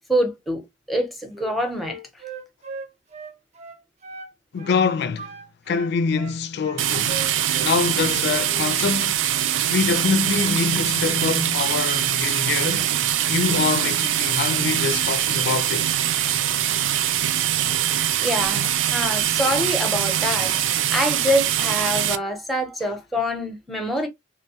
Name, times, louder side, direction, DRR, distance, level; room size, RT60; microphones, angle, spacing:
voice 1, 0.1-2.0 18.2-20.5 20.9-24.1, equal, ahead, 0.7 m, -25 dB
Wind instrument woodwind instrument, 1.3-4.3 4.6-4.8 5.2-7.7 8.0-8.7, right 3 dB, 40° right, 0.6 m, -38 dB
voice 2, 4.5-5.3 5.7-7.2 7.6-9.2 9.7-12.9 13.3-15.9, left 5 dB, 60° left, 0.4 m, -24 dB
sound 1, 6.8-22.2, right 11 dB, 85° right, 0.4 m, -23 dB
2.9 x 2.2 x 2.7 m
head